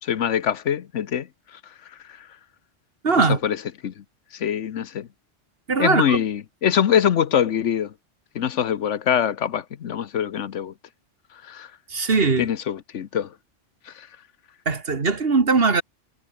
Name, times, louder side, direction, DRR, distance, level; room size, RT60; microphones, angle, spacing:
voice 1, 0.0-1.6 2.1-2.3 3.2-4.0 4.3-5.1 5.8-7.9 8.3-10.7 11.4-11.7 12.4-13.3 13.9-14.1, left 9 dB, 70° left, 1.2 m, -24 dB
voice 2, 3.0-3.4 5.7-6.2 11.9-12.5 14.7-15.8, right 4 dB, 50° right, 1.9 m, -20 dB
omnidirectional pair, 1.3 m